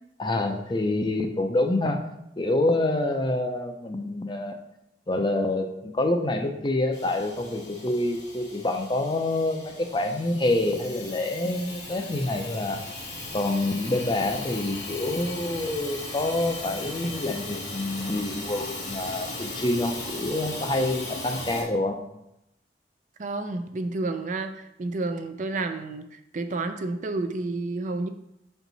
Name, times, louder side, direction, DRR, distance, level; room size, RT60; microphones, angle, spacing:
voice 1, 0.2-2.0 2.4-4.6 5.1-12.8 13.3-22.0, left 2 dB, 25° left, 5 dB, 0.5 m, -27 dB
Hiss / Toilet flush / Trickle dribble, 6.9-21.6, left 2 dB, 90° left, 2.2 m, -37 dB
voice 2, 23.2-28.1, right 3 dB, 45° right, 8 dB, 0.4 m, -30 dB
5.9 x 4.5 x 4.0 m, 0.84 s
head